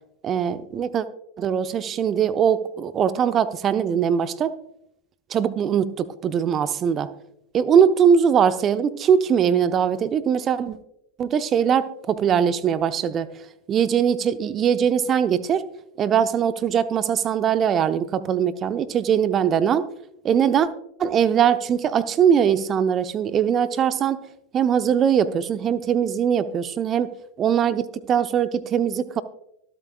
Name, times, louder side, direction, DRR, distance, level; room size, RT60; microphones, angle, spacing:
voice 1, 0.2-1.1 1.4-4.5 5.3-7.1 7.5-10.8 11.2-13.3 13.7-15.6 16.0-19.8 20.2-20.7 21.0-24.2 24.5-27.1 27.4-29.2, right 8 dB, 30° right, 13 dB, 0.7 m, -21 dB
24.0 x 8.4 x 2.3 m, 0.78 s
figure-of-eight pair, 85°, 0 cm